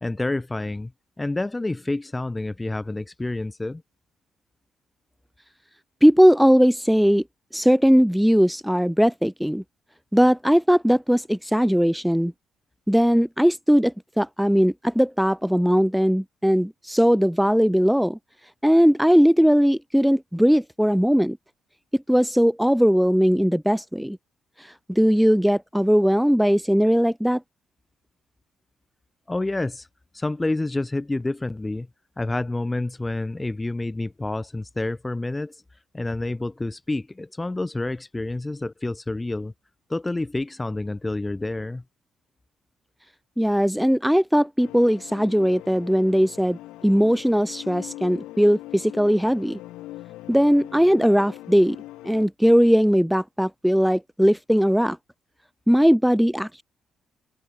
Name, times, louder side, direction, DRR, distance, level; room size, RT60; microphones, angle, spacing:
voice 1, 0.0-0.9 1.2-3.8 29.3-29.9 30.1-31.9 32.2-35.6 35.9-39.5 39.9-41.8, left 2 dB, 15° left, 1.9 m, -28 dB
voice 2, 6.0-7.2 7.5-9.6 10.1-12.3 12.9-18.2 18.6-21.4 22.1-24.2 24.6-27.4 43.4-49.6 50.3-51.8 52.0-55.0 55.7-56.6, equal, ahead, 0.6 m, -19 dB
sound 1, 44.6-52.3, left 17 dB, 90° left, 3.2 m, -41 dB
cardioid pair, 75°, 0 cm